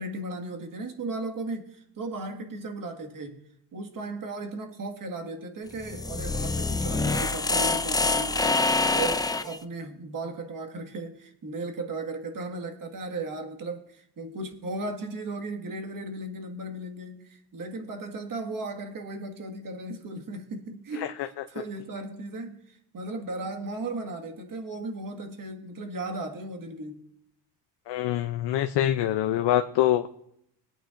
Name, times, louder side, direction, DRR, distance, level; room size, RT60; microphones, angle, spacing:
voice 1, 0.0-3.4 3.7-27.0, right 2 dB, 45° right, 4 dB, 1.8 m, -36 dB
sound 1, 5.7-9.6, left 3 dB, 10° left, 0.3 m, -26 dB
voice 2, 27.9-30.1, left 12 dB, 70° left, 7 dB, 0.6 m, -24 dB
22.0 x 8.9 x 2.6 m, 0.75 s
cardioid pair, 95°, 44 cm